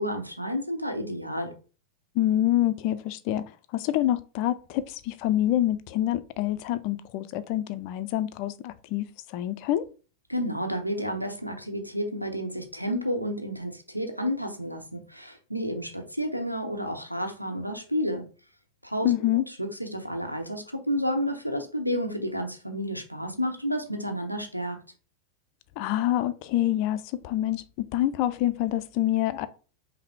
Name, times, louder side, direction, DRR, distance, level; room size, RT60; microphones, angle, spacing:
voice 1, 0.0-1.6 10.3-18.3 18.8-24.8, equal, 90° right, 0.7 m, -31 dB
voice 2, 2.1-9.9 19.0-19.4 25.8-29.5, left 13 dB, 45° left, 0.4 m, -26 dB
5.4 x 2.0 x 3.5 m
figure-of-eight pair, 90°, 0 cm